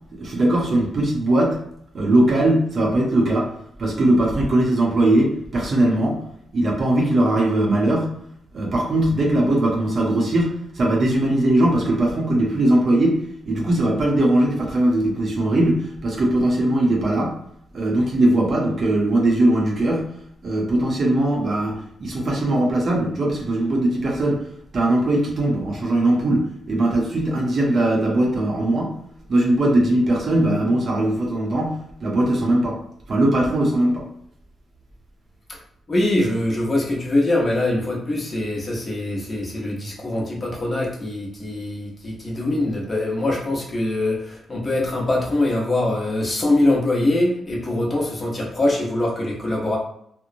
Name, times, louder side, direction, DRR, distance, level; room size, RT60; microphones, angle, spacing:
voice 1, 0.1-1.6 1.9-3.5 3.8-6.2 6.5-8.1 8.5-17.3 17.7-20.1 20.4-24.5 24.7-28.9 29.3-32.8 33.1-34.1, right 1 dB, 45° right, -1 dB, 0.7 m, -20 dB
voice 2, 35.9-49.8, left 1 dB, 25° left, -3 dB, 0.7 m, -23 dB
2.9 x 2.0 x 2.5 m, 0.69 s
wide cardioid pair, 150°, 0 cm